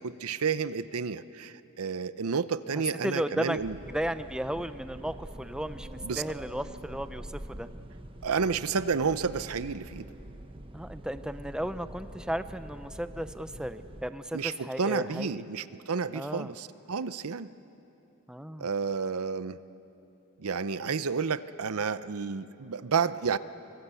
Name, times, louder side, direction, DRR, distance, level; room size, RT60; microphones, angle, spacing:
voice 1, 0.0-3.8 6.0-6.2 8.2-10.1 14.3-17.5 18.6-19.6 20.4-23.4, right 5 dB, 80° right, 14 dB, 0.7 m, -31 dB
voice 2, 3.0-3.6 3.9-5.9 6.2-7.7 10.7-15.4 16.1-16.5 18.3-18.7, right 1 dB, 5° right, 11 dB, 0.6 m, -34 dB
sound 1, 3.5-14.1, right 1 dB, 25° right, 1.1 m, -45 dB
24.5 x 22.5 x 8.3 m, 2.9 s
head